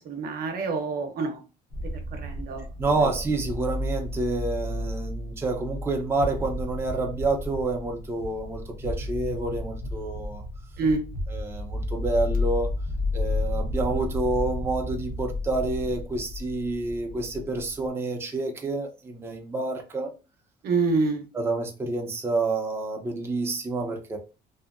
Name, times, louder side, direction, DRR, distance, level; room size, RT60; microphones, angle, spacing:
voice 1, 0.0-1.4 2.1-2.6 10.8-11.0 20.6-21.2, right 3 dB, 65° right, 0.7 m, -26 dB
sound 1, 1.7-17.9, left 2 dB, 55° left, 0.7 m, -32 dB
voice 2, 2.8-10.4 11.3-12.7 13.1-20.1 21.3-24.2, right 3 dB, 15° right, 0.5 m, -28 dB
2.7 x 2.1 x 2.4 m
cardioid pair, 110°, 17 cm